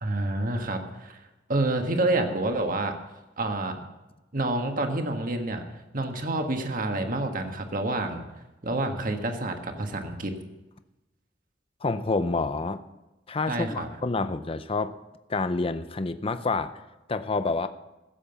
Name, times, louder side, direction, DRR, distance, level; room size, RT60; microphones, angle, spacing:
voice 1, 0.0-1.2 1.5-2.9 3.4-3.8 4.3-5.6 5.9-8.2 8.6-10.3 13.5-13.9, right 2 dB, 50° right, 5 dB, 1.5 m, -28 dB
voice 2, 11.8-12.8 13.3-14.9 15.3-16.8 17.1-17.7, left 3 dB, 30° left, 11 dB, 0.6 m, -28 dB
15.5 x 7.6 x 7.0 m, 1.0 s
head